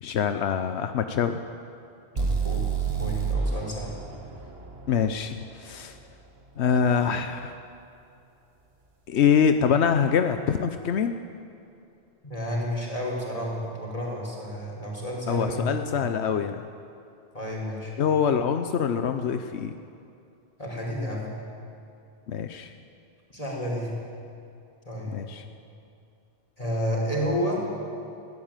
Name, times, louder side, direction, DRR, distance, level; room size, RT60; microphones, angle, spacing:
voice 1, 0.0-1.4 4.9-6.0 6.6-7.5 9.1-11.1 15.3-16.6 18.0-19.7 22.3-22.7 25.1-25.4, left 7 dB, 85° left, 8 dB, 1.1 m, -24 dB
voice 2, 2.1-3.9 12.2-15.6 15.9-16.0 17.3-17.9 20.6-21.3 23.3-23.9 24.8-25.2 26.6-27.6, equal, 35° left, -3 dB, 5.0 m, -31 dB
sound 1, 2.2-6.1, right 5 dB, 65° right, 1.9 m, -29 dB
21.0 x 16.0 x 9.0 m, 2.7 s
omnidirectional pair, 1.1 m